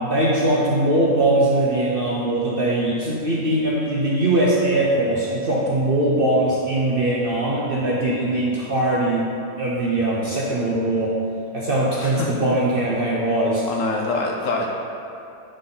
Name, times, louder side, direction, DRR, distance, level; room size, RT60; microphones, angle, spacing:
voice 1, 0.0-9.3 9.6-11.2 11.5-13.6, right 1 dB, 50° right, -5 dB, 0.8 m, -21 dB
voice 2, 12.0-12.3 13.7-14.7, left 3 dB, 60° left, 0 dB, 0.9 m, -25 dB
10.0 x 4.1 x 3.8 m, 2.7 s
omnidirectional pair, 1.7 m